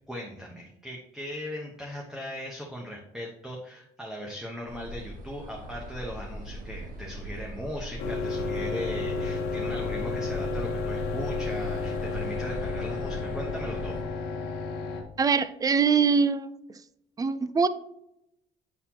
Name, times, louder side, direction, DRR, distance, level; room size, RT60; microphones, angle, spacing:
voice 1, 0.1-14.1, equal, 5° right, -2 dB, 0.9 m, -38 dB
sound 1, 4.7-14.0, right 1 dB, 55° right, 1.3 m, -40 dB
sound 2, 8.0-15.0, left 3 dB, 75° left, 1.1 m, -32 dB
voice 2, 15.2-16.5 17.2-17.7, right 5 dB, 20° right, 14 dB, 0.4 m, -23 dB
8.6 x 4.0 x 2.9 m, 0.82 s
cardioid pair, 110°, 17 cm